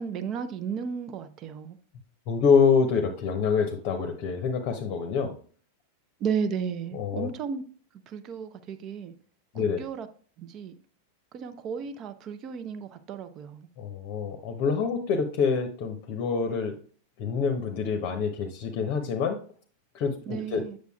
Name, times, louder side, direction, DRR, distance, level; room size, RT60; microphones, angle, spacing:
voice 1, 0.0-1.8 6.2-7.6 8.1-9.1 9.5-10.1 10.4-10.7 11.3-13.7 20.3-20.8, right 6 dB, 35° right, 0.6 m, -34 dB
voice 2, 2.3-5.3 6.9-7.3 9.5-9.8 13.8-16.8 17.2-19.4 19.9-20.6, left 5 dB, 45° left, 0.7 m, -26 dB
8.1 x 6.4 x 2.3 m
figure-of-eight pair, 90°, 0 cm